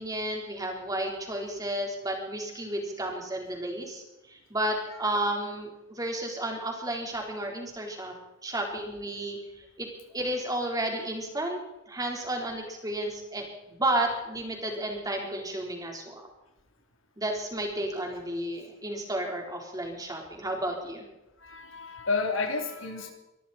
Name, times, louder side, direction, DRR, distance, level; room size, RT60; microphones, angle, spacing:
voice 1, 0.0-4.0 4.3-8.2 8.4-9.9 10.1-11.6 11.9-16.3 17.2-21.0, right 1 dB, 20° right, 1 dB, 4.1 m, -32 dB
voice 2, 21.4-23.1, left 4 dB, 75° left, 4 dB, 3.1 m, -31 dB
24.5 x 13.5 x 4.4 m, 0.97 s
head